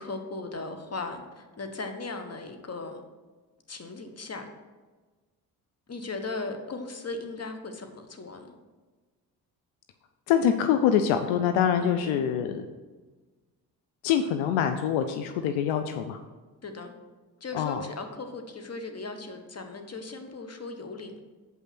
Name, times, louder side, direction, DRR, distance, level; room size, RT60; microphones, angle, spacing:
voice 1, 0.0-3.0 3.7-4.5 5.9-8.5 11.8-12.3 16.6-16.9 17.4-21.2, left 3 dB, 30° left, 6 dB, 1.3 m, -37 dB
voice 2, 10.3-12.7 14.0-16.2 17.5-17.8, left 8 dB, 75° left, 8 dB, 0.7 m, -25 dB
7.6 x 5.5 x 5.9 m, 1.3 s
hypercardioid pair, 45°, 49 cm